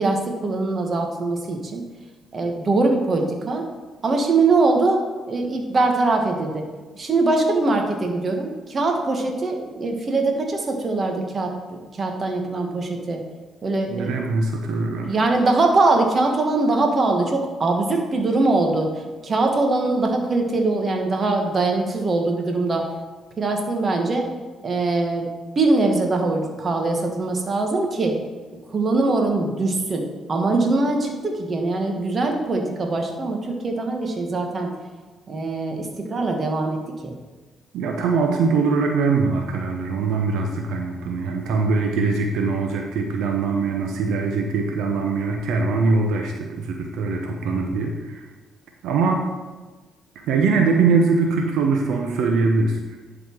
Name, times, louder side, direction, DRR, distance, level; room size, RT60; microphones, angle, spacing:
voice 1, 0.0-1.8 2.3-3.7 4.0-6.6 6.9-13.2 13.6-14.3 15.0-22.9 23.4-24.3 24.6-25.3 25.5-28.2 28.7-34.7 35.3-36.8 37.0-37.1, right 3 dB, 40° right, 3 dB, 1.4 m, -22 dB
voice 2, 13.9-15.1 37.7-48.3 48.8-49.3 50.1-53.0, right 4 dB, 85° right, 2 dB, 0.8 m, -22 dB
10.5 x 4.2 x 4.5 m, 1.3 s
cardioid pair, 90°, 0 cm